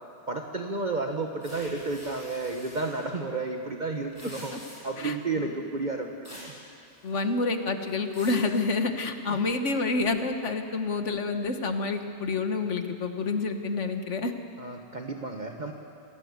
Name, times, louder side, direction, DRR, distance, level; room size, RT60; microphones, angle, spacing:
voice 1, 0.3-4.5 4.8-6.6 9.3-9.4 14.6-15.7, right 3 dB, 40° right, 3 dB, 1.3 m, -32 dB
sound 1, 1.4-3.0 4.0-5.0 6.2-6.6 6.9-7.4 7.8-8.5, equal, 15° left, 7.3 m, -46 dB
voice 2, 7.0-14.3, left 3 dB, 80° left, 6 dB, 1.7 m, -28 dB
27.0 x 16.0 x 8.1 m, 2.5 s
omnidirectional pair, 1.2 m